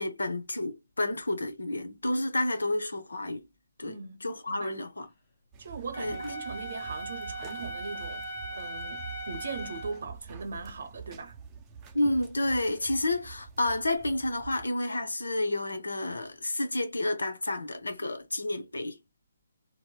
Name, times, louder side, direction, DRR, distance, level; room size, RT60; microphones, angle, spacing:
voice 1, 0.0-3.5 3.8-4.0 4.2-5.1 6.0-6.2 11.9-19.0, left 1 dB, 80° left, 0.8 m, -30 dB
voice 2, 3.8-4.8 5.6-11.4, right 4 dB, 60° right, 0.7 m, -40 dB
sound 1, 5.5-14.7, right 6 dB, 20° right, 0.5 m, -46 dB
Wind instrument woodwind instrument, 5.9-10.0, right 1 dB, 35° left, 1.3 m, -39 dB
4.1 x 2.1 x 2.2 m
figure-of-eight pair, 145°, 0 cm